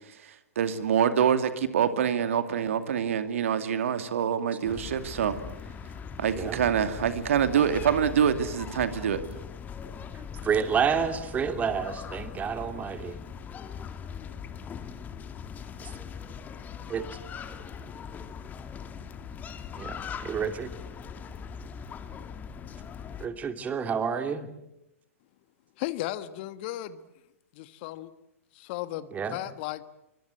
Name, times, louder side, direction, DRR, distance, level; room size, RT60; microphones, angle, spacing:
voice 1, 0.2-5.4 6.2-9.2, right 8 dB, 65° right, 9 dB, 2.5 m, -26 dB
sound 1, 4.6-23.3, left 7 dB, 20° left, 2.1 m, -40 dB
voice 2, 10.4-13.2 15.8-15.9 16.9-17.1 19.7-20.7 23.2-24.5 29.1-29.4, right 6 dB, 20° right, 7 dB, 2.9 m, -29 dB
voice 3, 25.8-27.0 27.5-28.1 28.5-29.8, left 15 dB, 45° left, 13 dB, 1.4 m, -35 dB
27.0 x 24.0 x 7.9 m, 0.89 s
figure-of-eight pair, 110°, 8 cm